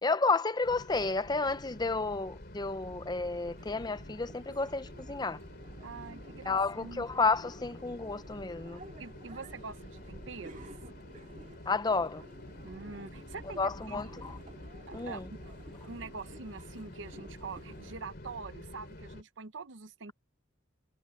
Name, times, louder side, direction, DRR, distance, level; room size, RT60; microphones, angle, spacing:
voice 1, 0.0-5.4 6.5-8.8 11.7-12.2 13.6-14.4 14.9-15.3, left 3 dB, 20° left, 0.6 m, -31 dB
sound 1, 0.6-19.2, left 1 dB, 55° left, 3.2 m, -48 dB
sound 2, 3.3-17.9, right 2 dB, 40° right, 2.4 m, -54 dB
voice 2, 5.8-7.1 9.0-10.7 12.6-14.2 14.9-15.6 15.9-20.1, right 4 dB, 70° right, 0.8 m, -45 dB
head